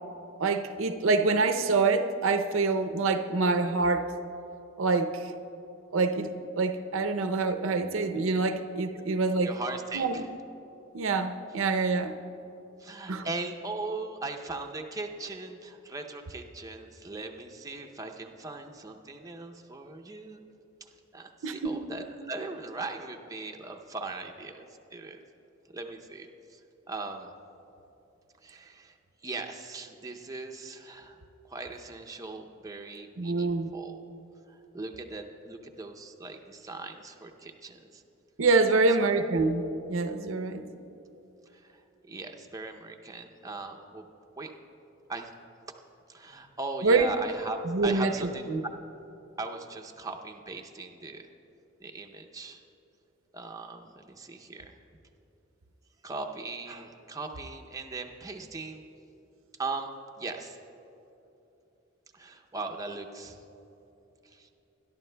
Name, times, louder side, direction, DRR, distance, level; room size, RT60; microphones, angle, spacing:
voice 1, 0.4-4.1 4.8-5.3 5.9-9.5 9.9-10.2 10.9-12.1 13.1-13.3 21.4-21.8 33.2-33.7 38.4-40.6 46.8-47.1 47.7-48.1 48.5-48.6, right 3 dB, 75° right, 8 dB, 0.6 m, -26 dB
voice 2, 9.4-10.3 12.8-20.4 20.8-25.2 25.7-26.6 26.9-27.3 28.4-29.0 29.2-31.2 31.4-34.0 34.5-38.0 38.7-39.1 41.5-44.1 44.4-44.5 45.1-45.3 46.1-48.7 49.4-51.3 51.8-52.6 53.3-54.7 56.0-58.8 59.6-59.9 60.2-60.6 62.1-63.4 64.2-64.5, right 3 dB, 15° right, 3 dB, 0.6 m, -39 dB
22.0 x 11.5 x 2.2 m, 2.9 s
head